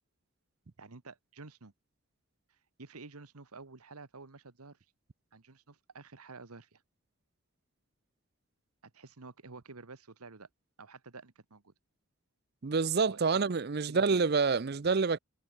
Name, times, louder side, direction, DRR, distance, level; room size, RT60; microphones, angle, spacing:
voice 1, 0.8-1.7 2.5-4.8 5.3-6.8 8.8-10.5 10.8-11.7 13.1-13.2 13.9-14.2, right 3 dB, 90° right, 1.4 m, -50 dB
voice 2, 12.6-15.2, right 4 dB, 45° right, 0.5 m, -27 dB
head